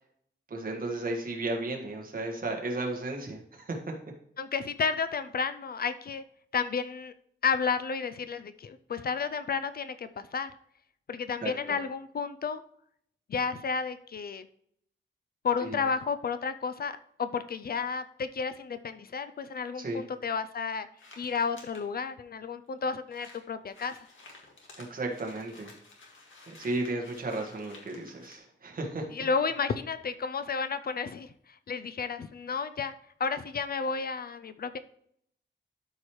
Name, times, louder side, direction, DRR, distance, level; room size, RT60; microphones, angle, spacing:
voice 1, 0.5-3.9 11.4-11.8 15.6-15.8 19.8-20.0 24.8-25.7 26.5-29.3, right 2 dB, 45° right, 1 dB, 1.6 m, -34 dB
voice 2, 4.4-6.2 6.5-7.1 7.4-10.5 11.1-12.6 13.3-14.4 15.4-20.9 21.2-24.0 29.1-31.3 31.7-32.9 33.2-34.8, left 5 dB, 50° left, 12 dB, 0.4 m, -32 dB
sound 1, 21.0-21.8 22.5-22.6 22.8-22.9 23.1-28.4, left 3 dB, 85° left, 1.9 m, -53 dB
12.5 x 4.8 x 3.1 m, 0.69 s
wide cardioid pair, 175°, 20 cm